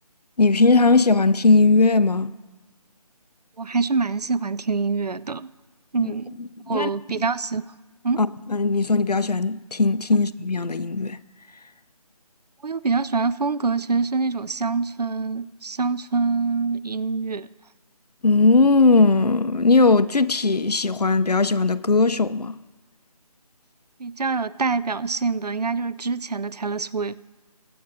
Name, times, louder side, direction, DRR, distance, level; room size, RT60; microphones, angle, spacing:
voice 1, 0.4-2.3 6.0-6.1 6.6-7.2 8.2-8.3 8.5-11.2 18.2-22.6, left 3 dB, 85° left, 0.6 m, -19 dB
voice 2, 3.6-5.5 5.9-6.3 6.7-7.7 8.0-8.2 12.6-17.5 24.0-27.2, right 4 dB, 85° right, 0.5 m, -25 dB
22.5 x 7.7 x 2.7 m
figure-of-eight pair, 160°, 20 cm